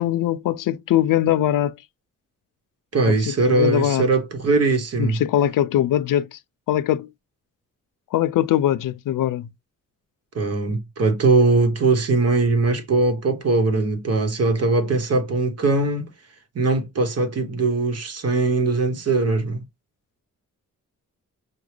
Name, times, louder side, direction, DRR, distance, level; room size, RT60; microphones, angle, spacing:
voice 1, 0.0-1.7 3.0-4.1 5.0-6.4 6.7-7.1 8.1-9.5, left 12 dB, 85° left, 0.5 m, -21 dB
voice 2, 2.9-5.2 10.3-16.1 16.5-19.6, right 3 dB, 50° right, 1.0 m, -20 dB
5.9 x 2.3 x 3.2 m
cardioid pair, 105°, 31 cm